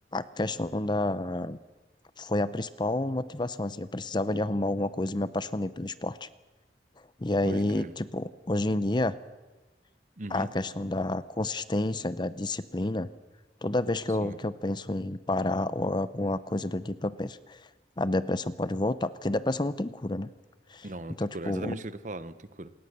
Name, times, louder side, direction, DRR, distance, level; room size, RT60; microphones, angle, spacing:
voice 1, 0.1-1.6 2.2-6.3 7.2-9.2 10.3-13.1 13.6-17.6 18.0-20.3 20.7-20.9 21.2-21.7, left 2 dB, 25° left, 15 dB, 0.7 m, -29 dB
voice 2, 7.5-7.9 10.2-10.5 14.2-14.4 20.8-22.7, right 1 dB, 45° right, 14 dB, 1.0 m, -38 dB
27.0 x 20.0 x 6.8 m, 1.2 s
head